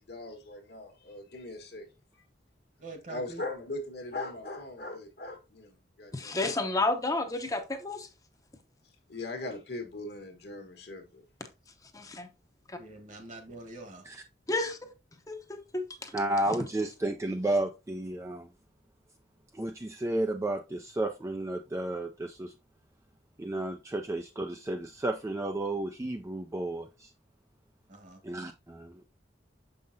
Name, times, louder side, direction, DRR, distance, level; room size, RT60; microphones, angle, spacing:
voice 1, 0.0-1.9 2.1-2.2 3.1-6.8 9.1-11.2, left 2 dB, 60° left, 1.3 m, -40 dB
voice 2, 2.8-3.4 12.8-14.1 27.9-28.2, right 2 dB, 45° right, 1.3 m, -45 dB
voice 3, 6.1-8.1 11.9-12.3 12.7-12.8 14.5-14.9 15.3-16.1, left 2 dB, 20° left, 0.7 m, -31 dB
voice 4, 16.1-18.5 19.5-22.5 23.4-27.1 28.2-29.0, right 1 dB, 15° right, 0.3 m, -32 dB
6.6 x 5.4 x 2.6 m
head